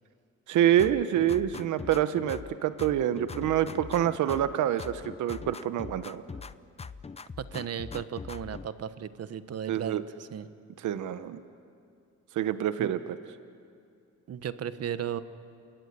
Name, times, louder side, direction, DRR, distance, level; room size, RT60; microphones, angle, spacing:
voice 1, 0.5-6.2 9.7-10.0 10.8-11.4 12.3-13.2, right 11 dB, 80° right, 12 dB, 1.1 m, -27 dB
sound 1, 0.8-2.5 2.8-4.5 4.8-6.5 6.8-8.7, left 5 dB, 20° left, 0.7 m, -41 dB
voice 2, 7.4-10.5 12.8-12.9 14.3-15.2, right 9 dB, 55° right, 12 dB, 1.2 m, -35 dB
28.5 x 18.0 x 9.8 m, 2.4 s
cardioid pair, 90°, 30 cm